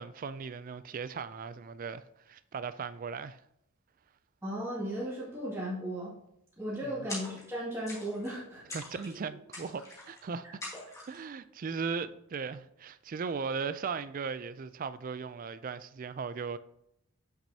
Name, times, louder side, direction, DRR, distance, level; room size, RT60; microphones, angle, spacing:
voice 1, 0.0-3.4 6.8-7.1 8.7-10.5 11.1-16.6, right 5 dB, 40° right, 0.3 m, -37 dB
voice 2, 4.4-6.1 6.6-8.8, equal, 10° right, 2.2 m, -36 dB
sound 1, 7.1-7.6 7.9-8.4 8.7-9.2 9.5-10.2 10.6-11.2, left 2 dB, 15° left, 1.7 m, -43 dB
8.4 x 6.1 x 2.8 m
head